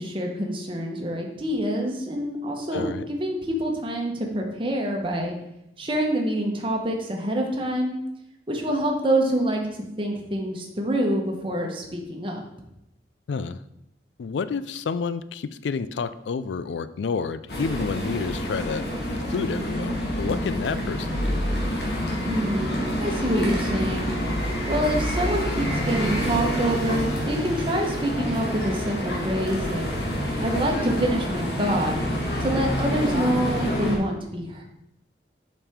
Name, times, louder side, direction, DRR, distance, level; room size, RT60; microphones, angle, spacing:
voice 1, 0.0-5.3 5.8-8.0 8.5-12.4 22.3-29.9 30.4-31.9 32.4-34.6, right 1 dB, 30° right, 1 dB, 1.1 m, -26 dB
voice 2, 2.7-3.0 13.3-13.6 14.2-18.8 19.1-21.4, left 5 dB, 90° left, 14 dB, 0.4 m, -30 dB
sound 1, 17.5-34.0, equal, 65° left, 1.7 m, -27 dB
7.1 x 5.2 x 3.6 m, 0.81 s
head